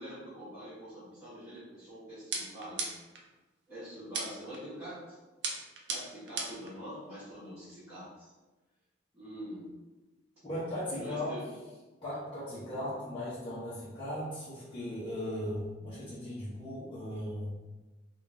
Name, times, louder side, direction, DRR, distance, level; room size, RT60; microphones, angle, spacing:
voice 1, 0.0-2.9 3.7-5.2 5.9-8.3 9.1-9.7 11.0-11.4 12.6-12.9, equal, 15° right, -15 dB, 1.5 m, -45 dB
sound 1, 2.3-3.2 4.1-4.6 5.4-6.7, right 4 dB, 65° right, 0.6 m, -36 dB
voice 2, 10.4-11.4 12.0-17.6, left 1 dB, 25° left, -13 dB, 1.1 m, -37 dB
3.7 x 2.6 x 3.6 m, 1.2 s
head